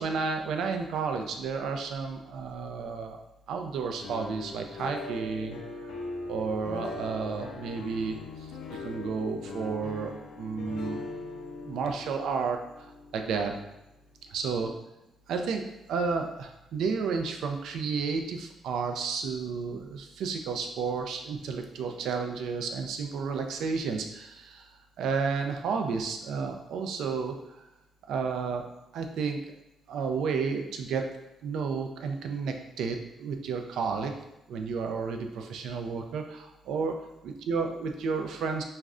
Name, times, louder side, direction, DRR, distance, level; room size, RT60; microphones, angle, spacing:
voice 1, 0.0-3.2 3.5-5.6 6.3-11.0 11.7-13.6 14.3-14.7 15.3-15.6 15.9-27.6 28.1-28.7 28.9-29.4 29.9-31.1 31.4-34.1 34.5-38.6, right 5 dB, 80° right, 4 dB, 0.3 m, -32 dB
sound 1, 4.0-13.9, left 2 dB, 80° left, 0.4 m, -41 dB
2.4 x 2.1 x 3.5 m, 0.92 s
cardioid pair, 90°, 0 cm